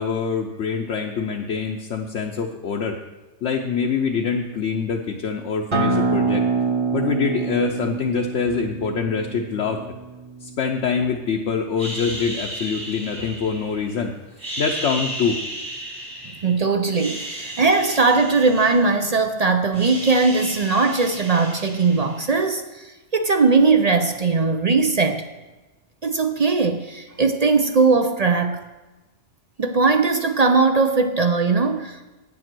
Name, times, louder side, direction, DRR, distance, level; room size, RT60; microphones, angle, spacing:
voice 1, 0.0-3.0 3.4-6.4 6.9-9.8 10.4-14.1 14.6-15.4, left 6 dB, 75° left, 1 dB, 1.0 m, -25 dB
Acoustic guitar, 5.7-10.9, right 4 dB, 30° right, 0.9 m, -25 dB
sound 1, 11.8-13.9 14.3-16.5 16.9-19.3 19.5-22.4, right 1 dB, 70° right, 3.8 m, -34 dB
voice 2, 16.4-25.3 26.0-28.7 29.6-32.1, right 4 dB, 45° right, 7 dB, 0.5 m, -19 dB
9.1 x 7.2 x 6.1 m, 1.1 s
omnidirectional pair, 1.2 m